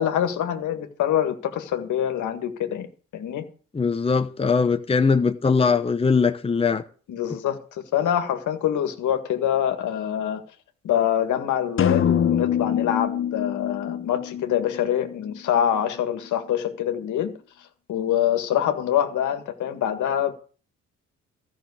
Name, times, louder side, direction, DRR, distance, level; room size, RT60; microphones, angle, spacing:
voice 1, 0.0-2.9 3.1-3.4 7.1-7.6 7.9-10.4 10.8-17.3 17.9-20.3, left 10 dB, 75° left, 1.8 m, -25 dB
voice 2, 3.7-6.8, left 5 dB, 20° left, 0.9 m, -21 dB
sound 1, 11.8-15.6, left 9 dB, 45° left, 0.9 m, -25 dB
13.5 x 6.1 x 8.4 m
cardioid pair, 90°, 30 cm